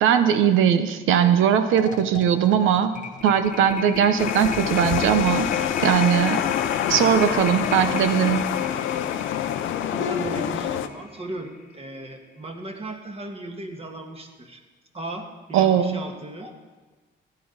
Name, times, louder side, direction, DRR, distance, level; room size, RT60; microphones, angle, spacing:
voice 1, 0.0-2.9 3.2-5.5 5.8-6.4 6.9-8.5 15.5-16.0, right 8 dB, 90° right, 10 dB, 0.8 m, -20 dB
sound 1, 1.2-1.4 1.7-11.9, left 6 dB, 40° left, 0.8 m, -35 dB
sound 2, 4.2-10.9, left 10 dB, 80° left, 0.7 m, -26 dB
voice 2, 9.9-14.6 14.9-16.5, right 2 dB, 30° right, 3 dB, 1.8 m, -36 dB
14.0 x 11.0 x 4.0 m, 1.3 s
cardioid pair, 90°, 20 cm